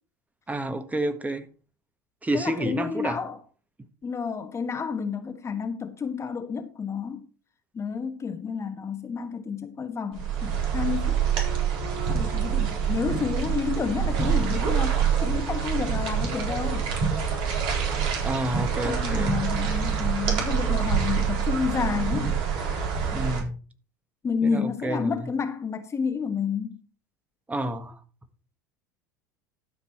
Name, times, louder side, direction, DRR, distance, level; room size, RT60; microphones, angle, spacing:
voice 1, 0.5-1.5 2.2-3.2 18.2-19.4 23.1-23.5 24.4-25.2 27.5-28.0, right 1 dB, 15° right, 1.5 m, -29 dB
voice 2, 2.3-3.4 4.0-7.2 7.7-11.2 12.1-16.9 18.8-22.4 24.2-26.8, left 6 dB, 25° left, 1.3 m, -30 dB
sound 1, 10.1-23.4, right 7 dB, 55° right, 3.8 m, -26 dB
12.5 x 6.1 x 4.4 m
hypercardioid pair, 75°, 10 cm